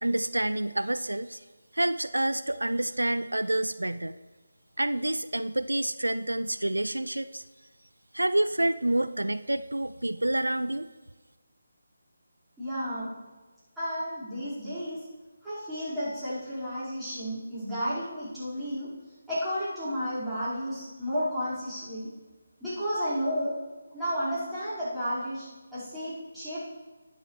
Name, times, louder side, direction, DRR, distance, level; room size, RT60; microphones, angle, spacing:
voice 1, 0.0-1.4 1.7-4.1 4.8-7.5 8.1-10.9, right 1 dB, 75° right, 13 dB, 0.4 m, -28 dB
voice 2, 12.6-13.1 13.8-15.1 15.4-22.1 22.6-23.6 23.9-26.6, equal, 5° right, -15 dB, 4.8 m, -32 dB
20.5 x 9.8 x 3.3 m, 1.3 s
figure-of-eight pair, 155°, 0 cm